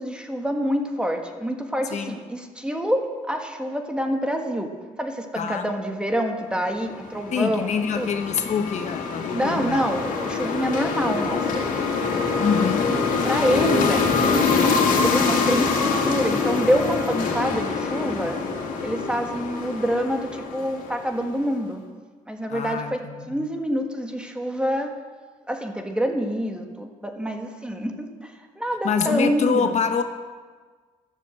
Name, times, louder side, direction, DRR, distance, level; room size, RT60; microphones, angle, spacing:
voice 1, 0.0-4.7 5.0-7.7 8.0-8.1 9.3-11.8 13.2-14.5 15.0-18.4 18.8-21.8 22.3-24.9 25.5-29.8, equal, 5° right, 4 dB, 1.5 m, -26 dB
voice 2, 5.4-5.7 7.3-9.8 12.4-13.0 22.5-23.5 28.8-30.0, left 6 dB, 55° left, 7 dB, 1.2 m, -25 dB
sound 1, 6.9-21.2, left 4 dB, 75° left, 2.7 m, -24 dB
13.0 x 12.5 x 7.7 m, 1.5 s
cardioid pair, 135°, 14 cm